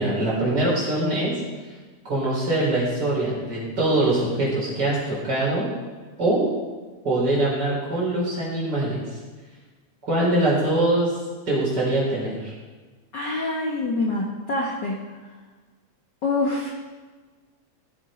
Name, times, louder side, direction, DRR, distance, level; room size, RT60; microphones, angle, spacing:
voice 1, 0.0-1.3 2.0-5.7 6.2-6.5 7.0-9.2 10.1-11.1 11.5-12.5, right 1 dB, 35° right, -5 dB, 4.7 m, -23 dB
voice 2, 13.1-15.0 16.2-16.7, left 2 dB, 50° left, -2 dB, 1.5 m, -25 dB
16.0 x 7.4 x 5.1 m, 1.4 s
omnidirectional pair, 3.3 m